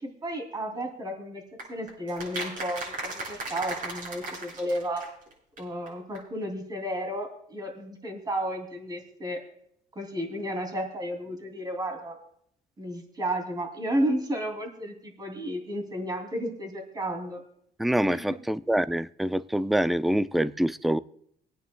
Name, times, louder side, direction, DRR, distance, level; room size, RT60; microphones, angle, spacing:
voice 1, 0.0-1.4 1.7-5.1 5.6-9.4 9.9-12.2 12.8-17.4 18.1-18.4, right 1 dB, 25° right, 3 dB, 2.8 m, -32 dB
sound 1, 1.6-5.3 5.6-5.7 5.9-6.0 6.1-6.2, right 2 dB, 55° right, 6.1 m, -36 dB
voice 2, 17.8-21.0, right 1 dB, ahead, 15 dB, 0.3 m, -25 dB
26.0 x 9.2 x 2.3 m, 0.70 s
cardioid pair, 110°, 17 cm